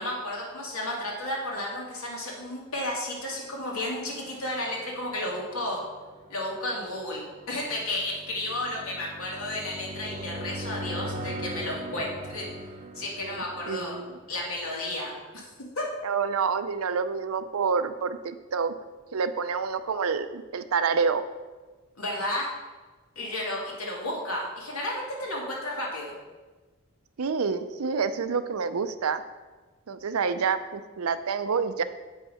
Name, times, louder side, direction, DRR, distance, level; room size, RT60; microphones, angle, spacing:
voice 1, 0.0-5.8 6.3-12.4 12.9-14.0 14.3-15.4 15.8-15.9 22.0-22.5 23.2-26.1, left 1 dB, 80° left, -3 dB, 2.4 m, -32 dB
sound 1, 4.1-14.9, right 1 dB, 35° right, 0.6 m, -40 dB
voice 2, 13.2-14.2 16.0-18.7 19.1-21.2 27.2-29.2 29.9-31.8, right 5 dB, 80° right, 11 dB, 0.5 m, -28 dB
8.4 x 5.5 x 5.6 m, 1.3 s
head